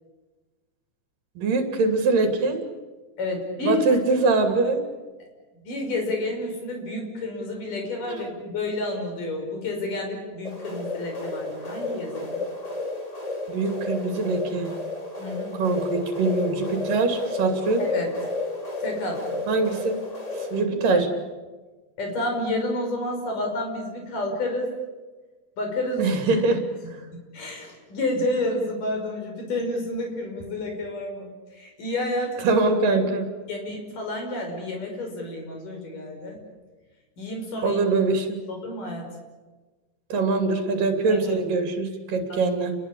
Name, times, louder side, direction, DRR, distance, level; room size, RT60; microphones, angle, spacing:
voice 1, 1.4-2.6 3.6-4.8 8.1-8.2 13.5-14.7 15.5-17.8 19.5-20.0 20.4-21.1 26.0-26.6 32.4-33.3 37.6-38.4 40.1-42.8, right 3 dB, 85° right, 5 dB, 4.6 m, -23 dB
voice 2, 3.2-3.8 5.6-12.4 15.2-15.6 17.8-18.1 18.8-19.4 20.6-21.0 22.0-24.7 25.6-26.1 26.8-26.9 27.3-32.5 32.9-33.1 33.5-36.4 37.2-37.8 38.5-39.1 41.1-41.4 42.3-42.4, left 2 dB, 75° left, 2 dB, 7.4 m, -30 dB
sound 1, 10.4-20.6, left 2 dB, 10° left, 2.9 m, -32 dB
29.0 x 21.5 x 8.6 m, 1.3 s
omnidirectional pair, 3.8 m